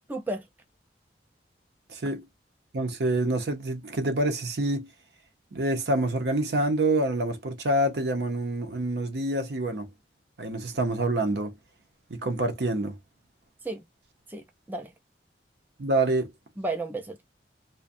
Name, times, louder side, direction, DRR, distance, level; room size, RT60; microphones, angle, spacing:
voice 1, 0.1-0.5 13.6-13.8 14.3-14.9 16.6-17.2, right 2 dB, 10° right, 0.4 m, -33 dB
voice 2, 1.9-2.3 2.7-4.9 5.5-9.9 10.4-11.5 12.1-13.0 15.8-16.3, right 1 dB, 65° right, 0.7 m, -27 dB
2.4 x 2.2 x 2.5 m
head